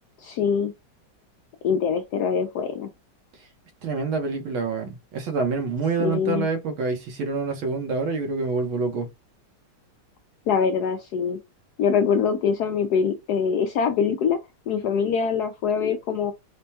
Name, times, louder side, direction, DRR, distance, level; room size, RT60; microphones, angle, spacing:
voice 1, 0.2-0.7 1.6-2.9 6.0-6.5 10.5-11.4 11.8-14.4 14.7-16.3, left 6 dB, 75° left, 0.9 m, -23 dB
voice 2, 3.8-9.1, right 4 dB, 90° right, 1.9 m, -27 dB
5.0 x 2.2 x 2.8 m
omnidirectional pair, 2.2 m